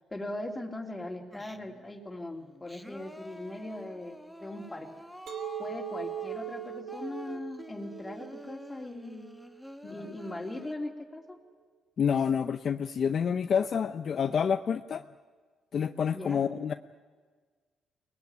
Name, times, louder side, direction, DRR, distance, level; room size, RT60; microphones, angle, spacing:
voice 1, 0.1-4.9 5.6-9.3 9.9-11.4 16.1-16.5, left 1 dB, 15° left, 2 dB, 3.1 m, -40 dB
Singing, 1.3-1.9 2.4-10.7, left 1 dB, ahead, 1.4 m, -47 dB
Chink clink, 5.3-10.4, right 10 dB, 75° right, 2.5 m, -41 dB
voice 2, 12.0-15.0 15.7-16.7, left 7 dB, 55° left, 9 dB, 0.6 m, -28 dB
23.0 x 19.5 x 9.5 m, 1.5 s
cardioid pair, 90°, 0 cm